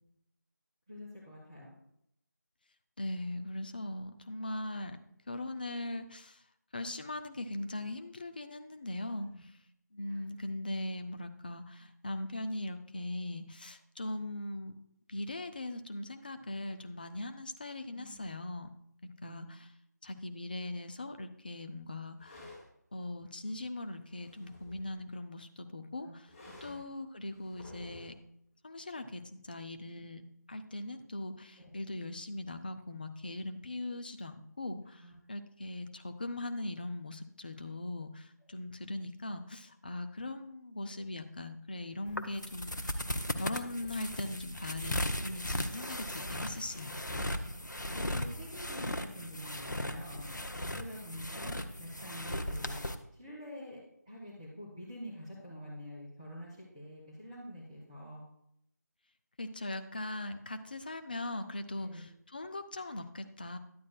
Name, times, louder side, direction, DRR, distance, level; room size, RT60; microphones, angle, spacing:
voice 1, 0.9-1.8 9.2-9.4 10.1-10.2 17.9-18.2 19.2-19.5 26.0-26.1 26.6-26.8 29.9-30.0 31.6-31.7 35.0-35.1 47.1-50.3 50.7-52.9 53.1-53.8 54.1-58.2 61.7-62.1, equal, 15° right, -9 dB, 1.8 m, -47 dB
voice 2, 3.0-5.0 5.3-6.4 6.7-9.5 9.9-14.7 15.1-18.7 19.0-19.7 20.0-22.5 22.9-26.3 26.6-28.1 28.6-30.2 30.5-43.0 43.4-47.0 59.4-63.6, left 1 dB, 30° left, 8 dB, 0.5 m, -40 dB
sound 1, 22.2-22.7 23.9-25.0 26.3-26.9 27.3-28.2, left 1 dB, 15° left, 3.6 m, -52 dB
sound 2, 42.1-52.9, left 1 dB, 90° left, 0.8 m, -37 dB
11.0 x 8.4 x 2.3 m, 0.74 s
figure-of-eight pair, 165°, 10 cm